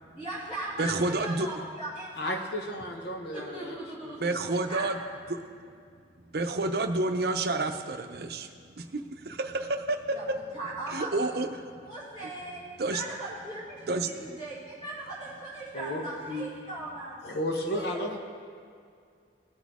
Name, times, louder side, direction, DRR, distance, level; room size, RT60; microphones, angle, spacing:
voice 1, 0.2-2.4 3.3-5.0 10.1-10.2 10.5-11.1 11.8-12.6 12.9-17.3 17.6-18.1, right 2 dB, 40° left, -10 dB, 2.3 m, -39 dB
voice 2, 0.8-1.5 4.2-5.0 6.3-8.5 8.8-10.2 10.9-11.5 12.8-13.0 13.9-14.4, right 2 dB, 60° right, 7 dB, 0.6 m, -29 dB
voice 3, 2.2-4.5 15.7-16.5 17.2-18.2, equal, 65° left, 3 dB, 1.0 m, -34 dB
18.0 x 6.3 x 3.6 m, 2.3 s
head